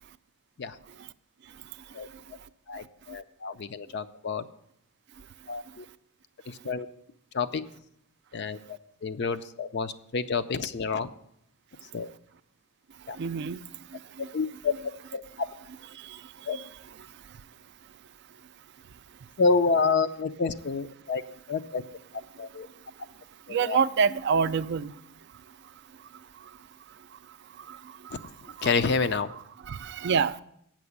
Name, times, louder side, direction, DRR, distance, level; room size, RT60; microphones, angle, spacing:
voice 1, 2.7-4.4 5.5-5.9 6.5-6.9 7.3-7.6 8.3-11.1 11.9-12.1 13.1-13.2 14.3-14.7 15.1-15.5 16.5-16.6 19.4-21.8 22.4-22.7 23.5-23.8 28.1-28.2 28.6-29.3, left 4 dB, 50° left, 10 dB, 0.5 m, -28 dB
voice 2, 13.2-13.6 14.2-14.3 23.5-24.9 29.7-30.4, right 6 dB, 50° right, 15 dB, 0.4 m, -25 dB
8.7 x 6.1 x 8.1 m, 0.72 s
head